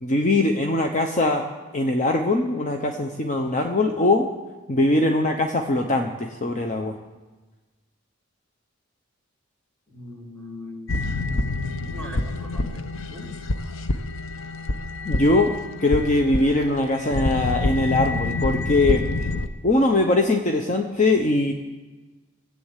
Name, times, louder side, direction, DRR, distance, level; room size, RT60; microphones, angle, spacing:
voice 1, 0.0-1.5 1.7-4.3 4.7-6.9 15.0-15.5 15.8-19.0 19.6-21.5, left 2 dB, 40° left, 3 dB, 0.8 m, -21 dB
voice 2, 9.9-11.3 11.8-13.3, left 1 dB, 10° left, -2 dB, 3.0 m, -40 dB
sound 1, 10.9-19.5, left 2 dB, 80° left, 0.8 m, -27 dB
18.0 x 7.8 x 8.2 m, 1.3 s
head